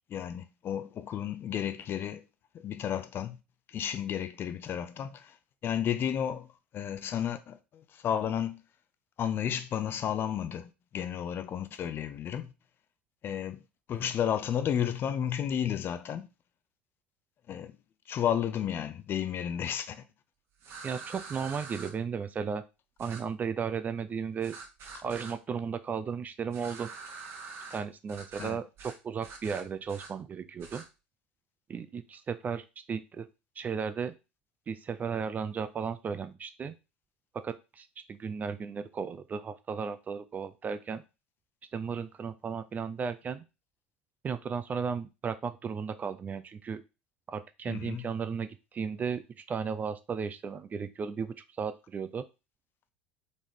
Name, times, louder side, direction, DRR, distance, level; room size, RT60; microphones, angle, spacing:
voice 1, 0.1-2.2 2.5-3.4 3.7-5.3 5.6-6.5 6.7-7.6 7.9-8.6 9.2-12.5 13.2-13.6 13.9-16.3 17.5-17.7 18.1-20.0 28.4-28.6 47.7-48.0, left 9 dB, 40° left, 0.5 m, -32 dB
sound 1, 20.6-21.9 23.0-23.2 24.4-25.3 26.5-27.8 28.1-28.5 28.8-29.0 29.2-30.1 30.6-30.8, right 4 dB, 45° right, 1.1 m, -45 dB
voice 2, 20.8-22.6 23.0-24.6 25.0-26.9 27.7-30.8 31.7-33.3 33.6-34.1 34.7-36.7 37.3-41.0 41.7-43.4 44.2-46.8 47.3-52.2, right 6 dB, 25° right, 0.4 m, -35 dB
4.0 x 3.7 x 3.1 m
figure-of-eight pair, 70°, 6 cm